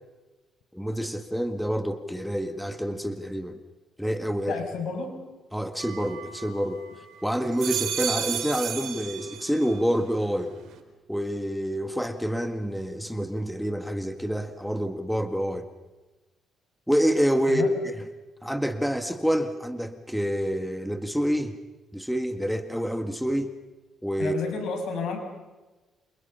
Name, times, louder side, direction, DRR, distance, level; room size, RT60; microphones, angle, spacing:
voice 1, 0.7-3.6 4.0-4.6 5.5-6.8 7.2-10.5 11.1-15.7 16.9-17.9 18.4-21.5 21.9-23.5 24.0-24.4, equal, ahead, 8 dB, 1.8 m, -27 dB
voice 2, 4.5-5.2 17.5-17.7 24.2-25.2, left 4 dB, 75° left, 5 dB, 6.6 m, -31 dB
sound 1, 5.8-6.9 7.4-9.8 10.2-10.8, right 9 dB, 80° right, 4.4 m, -33 dB
28.0 x 28.0 x 5.6 m, 1.2 s
cardioid pair, 90°, 0 cm